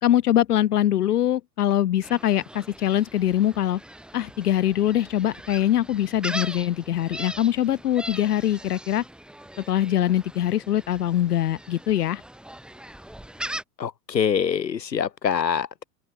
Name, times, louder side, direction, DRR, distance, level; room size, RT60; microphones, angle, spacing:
voice 1, 0.0-3.8 4.1-9.0 9.7-12.2, left 12 dB, 65° left, 2.3 m, -23 dB
Gull seagull, 2.0-13.6, right 1 dB, ahead, 2.8 m, -40 dB
voice 2, 13.8-15.8, left 7 dB, 85° left, 1.1 m, -25 dB
open air
figure-of-eight pair, 100°, 49 cm